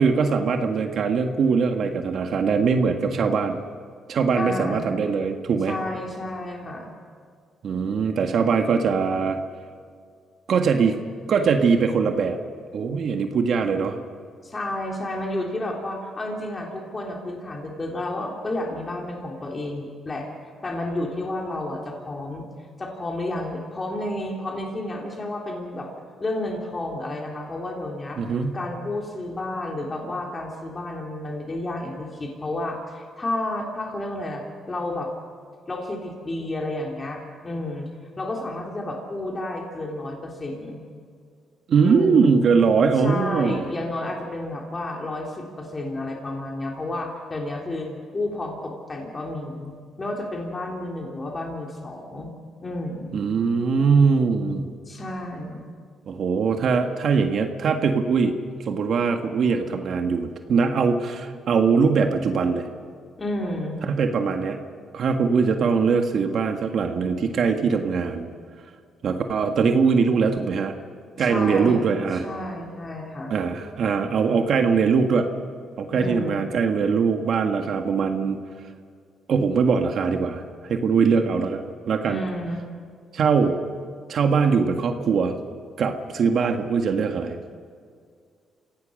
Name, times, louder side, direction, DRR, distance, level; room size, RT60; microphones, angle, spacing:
voice 1, 0.0-3.6 4.1-5.7 7.6-9.4 10.5-11.0 11.3-12.4 12.7-14.0 28.2-28.6 41.7-43.7 53.1-54.7 56.1-62.7 63.9-64.6 64.9-68.3 69.0-70.7 71.2-72.3 73.3-75.3 75.8-78.4 79.3-82.2 83.1-83.6 84.1-85.4 85.8-87.4, right 5 dB, 60° right, 5 dB, 1.7 m, -22 dB
voice 2, 4.4-4.8 5.7-6.9 14.4-20.3 20.6-22.5 22.8-25.9 26.2-28.2 28.5-35.1 35.7-37.9 38.2-40.8 41.8-42.5 43.0-52.3 52.6-53.2 54.9-55.7 63.2-63.8 71.2-71.9 72.2-73.4 75.9-76.4 82.0-82.6, left 1 dB, 30° left, 0 dB, 3.5 m, -31 dB
26.5 x 17.0 x 6.5 m, 2.1 s
cardioid pair, 90°, 0 cm